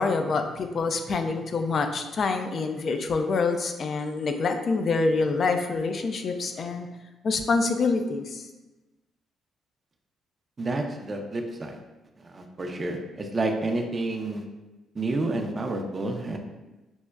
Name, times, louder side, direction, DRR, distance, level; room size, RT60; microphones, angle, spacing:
voice 1, 0.0-6.9 7.2-8.5, left 4 dB, 50° left, 6 dB, 0.4 m, -26 dB
voice 2, 10.6-11.8 12.2-14.4 14.9-16.4, right 2 dB, 30° right, 3 dB, 0.5 m, -29 dB
6.0 x 2.1 x 2.3 m, 1.1 s
cardioid pair, 90°, 0 cm